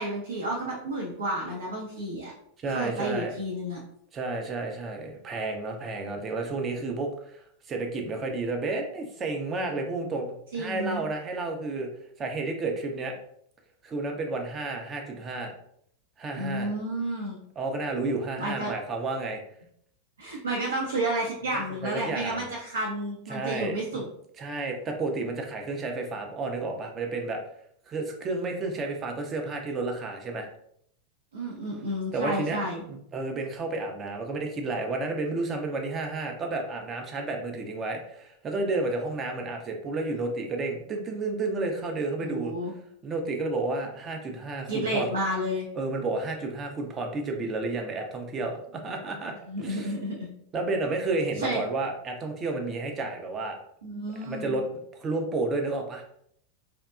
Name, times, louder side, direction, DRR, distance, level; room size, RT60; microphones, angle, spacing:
voice 1, 0.0-2.3 2.7-3.8 10.5-11.0 16.4-17.4 18.4-18.7 20.2-24.0 31.3-32.8 42.2-42.7 44.7-45.7 49.5-50.3 51.4-51.6 53.8-54.6, right 1 dB, 70° right, -4 dB, 0.6 m, -31 dB
voice 2, 2.6-3.3 4.1-7.4 7.7-11.9 12.2-13.1 13.8-15.5 16.2-16.7 17.6-19.4 21.5-22.5 23.3-24.0 24.4-27.4 27.9-30.5 32.1-32.6 32.9-42.5 43.0-45.1 45.7-49.3 49.6-49.9 50.5-53.6 54.2-54.7 55.0-56.0, right 3 dB, 25° right, 2 dB, 0.5 m, -31 dB
2.7 x 2.1 x 2.3 m, 0.69 s
figure-of-eight pair, 90°, 0 cm